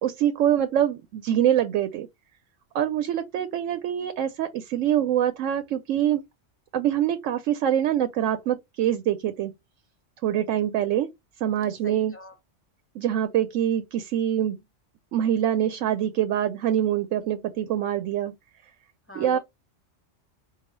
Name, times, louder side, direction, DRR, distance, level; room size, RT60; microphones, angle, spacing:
voice 1, 0.0-2.1 2.7-6.2 6.7-9.5 10.2-11.1 11.4-12.1 12.9-14.6 15.1-18.3 19.1-19.4, right 10 dB, 90° right, 1.0 m, -24 dB
voice 2, 11.8-12.4 19.1-19.4, right 1 dB, 10° left, 0.9 m, -40 dB
4.7 x 2.3 x 3.1 m
omnidirectional pair, 1.3 m